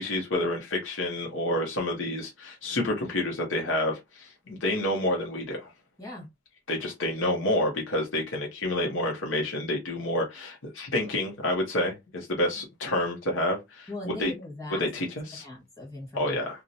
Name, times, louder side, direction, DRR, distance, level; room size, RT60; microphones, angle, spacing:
voice 1, 0.0-5.6 6.7-13.9 14.2-14.3 14.8-15.4 16.1-16.6, left 1 dB, 75° left, 0.7 m, -29 dB
voice 2, 13.9-14.9 15.4-16.4, left 1 dB, 15° left, 1.4 m, -39 dB
2.5 x 2.0 x 2.7 m
head